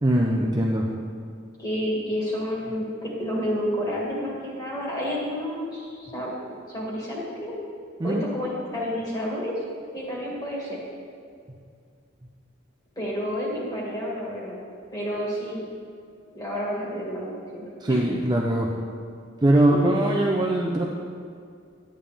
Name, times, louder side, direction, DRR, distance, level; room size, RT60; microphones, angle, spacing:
voice 1, 0.0-0.9 8.0-8.2 17.8-18.7 19.4-20.9, right 1 dB, 20° right, -1 dB, 0.6 m, -21 dB
voice 2, 1.6-6.3 6.7-7.5 8.0-9.6 9.9-10.8 13.0-14.6 14.9-15.6 16.3-18.0 19.5-19.9, equal, 20° left, -5 dB, 2.1 m, -30 dB
11.0 x 8.8 x 3.5 m, 2.3 s
head